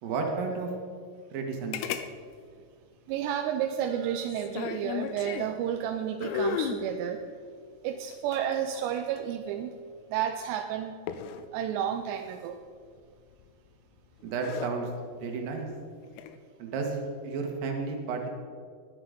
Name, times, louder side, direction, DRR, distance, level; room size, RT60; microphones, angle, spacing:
voice 1, 0.0-0.7 1.3-1.8 14.2-14.9 15.2-15.7 16.6-18.3, right 4 dB, 60° right, 2 dB, 3.2 m, -32 dB
sound 1, 1.7-2.1 2.3-2.4 4.3-5.6 6.2-6.8 8.1-9.3 11.1-11.5 13.3-13.7 14.2-14.7 16.0-16.4, left 7 dB, 90° left, 2.8 m, -34 dB
voice 2, 3.1-7.2 7.8-9.8 10.1-10.9 11.5-12.6, right 9 dB, 90° right, 5 dB, 2.9 m, -31 dB
20.5 x 8.0 x 5.2 m, 2.1 s
omnidirectional pair, 4.8 m